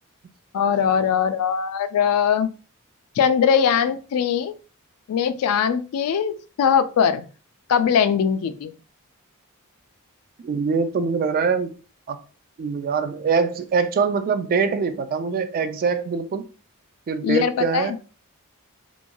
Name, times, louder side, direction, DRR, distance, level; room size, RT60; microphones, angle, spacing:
voice 1, 0.5-2.5 3.2-4.5 5.1-7.2 7.7-8.7 17.2-18.0, left 7 dB, 70° left, 11 dB, 0.3 m, -21 dB
voice 2, 10.4-11.7 12.1-12.2 12.6-16.4 17.1-17.9, right 5 dB, 40° right, 9 dB, 0.3 m, -23 dB
2.9 x 2.5 x 2.2 m, 0.36 s
head